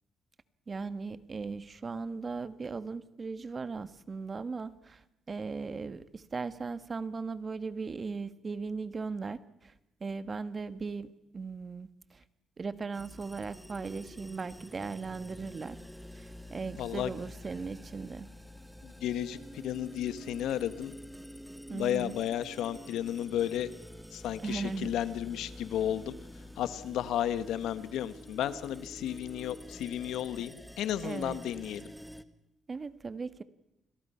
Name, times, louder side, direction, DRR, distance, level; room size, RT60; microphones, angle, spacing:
voice 1, 0.7-5.0 5.3-9.7 10.0-12.2 12.6-15.8 16.1-18.3 21.7-22.1 24.4-24.9 31.0-31.4 32.7-33.4, right 4 dB, 35° right, 14 dB, 1.3 m, -38 dB
sound 1, 12.9-32.2, equal, ahead, 1.4 m, -48 dB
voice 2, 16.8-17.1 18.8-20.9 21.7-23.7 24.1-26.1 26.6-31.8, left 11 dB, 85° left, 13 dB, 1.3 m, -33 dB
30.0 x 22.0 x 5.7 m, 0.94 s
cardioid pair, 90°, 0 cm